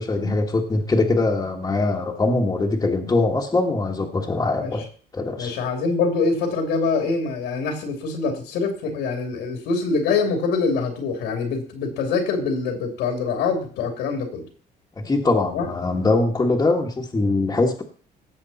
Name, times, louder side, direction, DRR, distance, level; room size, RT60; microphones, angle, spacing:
voice 1, 0.0-4.8 5.1-5.5 15.0-17.8, left 2 dB, 20° left, -2 dB, 1.8 m, -22 dB
voice 2, 5.4-14.4 15.5-15.7, left 4 dB, 90° left, 4 dB, 3.0 m, -24 dB
17.5 x 7.0 x 4.3 m, 0.43 s
cardioid pair, 110°, 17 cm